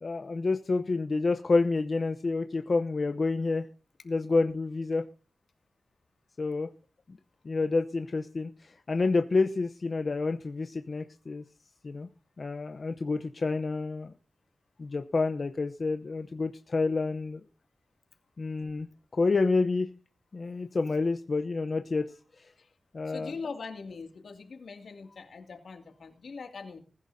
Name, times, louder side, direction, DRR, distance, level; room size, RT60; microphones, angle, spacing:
voice 1, 0.0-3.7 4.1-5.0 6.4-6.7 7.4-11.4 11.8-12.1 12.4-14.1 14.8-17.4 18.4-18.9 19.1-19.9 20.3-22.5 22.9-23.3, left 3 dB, 45° left, 7 dB, 0.8 m, -29 dB
voice 2, 23.1-26.8, left 4 dB, 75° left, 5 dB, 2.4 m, -42 dB
20.5 x 10.5 x 2.7 m, 0.37 s
wide cardioid pair, 135°, 0 cm